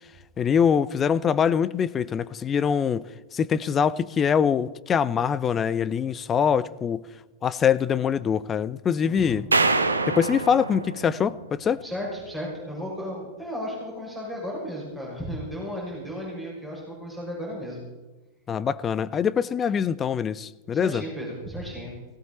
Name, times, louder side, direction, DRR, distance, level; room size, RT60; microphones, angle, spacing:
voice 1, 0.4-3.1 3.3-7.1 7.4-9.5 10.1-11.8 18.5-21.0, left 7 dB, 25° left, 0.5 m, -23 dB
voice 2, 9.0-9.4 11.8-17.8 20.7-21.9, equal, 5° right, 6.5 m, -34 dB
sound 1, 9.5-11.8, right 3 dB, 80° right, 1.0 m, -25 dB
17.5 x 17.0 x 4.2 m
figure-of-eight pair, 90°, 0 cm